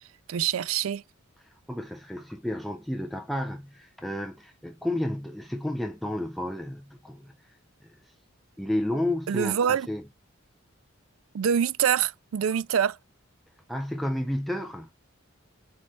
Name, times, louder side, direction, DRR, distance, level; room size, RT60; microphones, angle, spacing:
voice 1, 0.3-1.0 9.3-9.9 11.3-13.0, right 8 dB, 80° right, 0.4 m, -25 dB
voice 2, 1.4-7.6 7.8-8.1 8.6-10.0 13.7-14.9, left 1 dB, ahead, 0.4 m, -32 dB
5.2 x 4.4 x 4.4 m
head